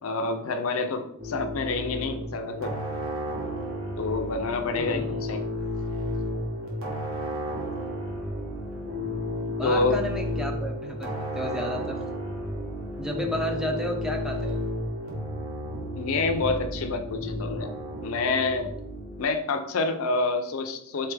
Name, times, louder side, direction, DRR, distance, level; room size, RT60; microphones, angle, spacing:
voice 1, 0.0-2.8 4.0-5.4 9.6-10.0 16.0-17.7 18.0-18.7 19.2-21.1, left 3 dB, 65° left, 7 dB, 0.5 m, -27 dB
sound 1, 1.2-19.2, left 1 dB, 65° right, 1.1 m, -32 dB
voice 2, 4.8-5.2 9.5-12.0 13.0-14.6, right 1 dB, 5° right, 2 dB, 0.3 m, -32 dB
3.8 x 3.3 x 3.3 m, 0.75 s
head